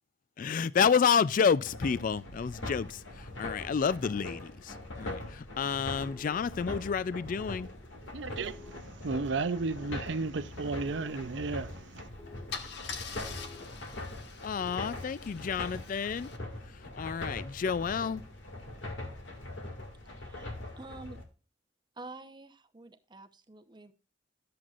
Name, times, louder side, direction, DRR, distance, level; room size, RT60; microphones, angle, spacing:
voice 1, 0.4-7.7 14.4-16.3 16.9-18.2, left 6 dB, 45° left, 0.3 m, -29 dB
sound 1, 1.6-21.2, left 2 dB, 85° left, 2.1 m, -42 dB
sound 2, 5.8-15.5, left 3 dB, 25° left, 1.1 m, -55 dB
voice 2, 8.1-12.1, right 3 dB, 70° right, 0.6 m, -34 dB
Car / Engine starting / Idling, 11.8-12.0 12.5-16.4, left 6 dB, 65° left, 1.3 m, -44 dB
voice 3, 20.1-21.2 22.0-23.9, right 2 dB, 25° right, 0.8 m, -48 dB
12.5 x 7.7 x 2.4 m
head